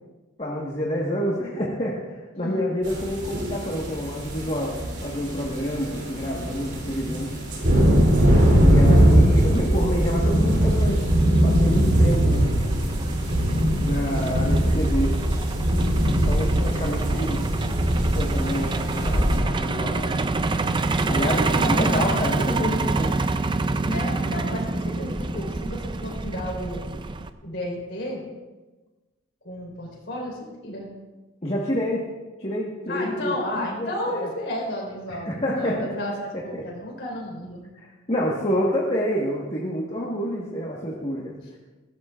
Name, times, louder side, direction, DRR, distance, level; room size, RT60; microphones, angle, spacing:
voice 1, 0.4-4.7 5.0-7.3 8.6-11.0 11.4-12.6 13.8-15.1 16.2-17.4 18.0-20.0 21.1-23.1 31.4-32.0 32.4-34.3 35.1-35.7 36.5-36.6 37.8-41.6, equal, 30° left, -4 dB, 1.5 m, -28 dB
sound 1, 2.8-19.4, equal, 55° right, 3.6 m, -21 dB
Truck, 9.5-27.3, right 3 dB, 20° right, 0.4 m, -27 dB
Wind instrument woodwind instrument, 18.3-25.5, left 2 dB, 70° right, 5.1 m, -42 dB
voice 2, 21.6-22.4 22.6-23.1 23.8-26.9 27.4-28.3 29.4-30.9 32.9-37.6, left 1 dB, 50° left, -2 dB, 4.4 m, -32 dB
20.0 x 16.0 x 2.5 m, 1.2 s
head